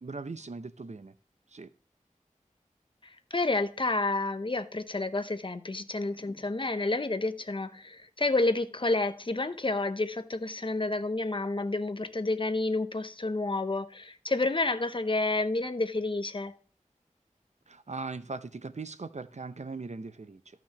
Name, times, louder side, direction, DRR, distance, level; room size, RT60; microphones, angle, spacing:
voice 1, 0.0-1.1 1.5-1.7 17.7-20.4, right 3 dB, 60° right, 0.6 m, -39 dB
voice 2, 3.0-16.5, left 2 dB, 40° left, 0.7 m, -30 dB
13.5 x 6.0 x 2.9 m
wide cardioid pair, 40°, 14 cm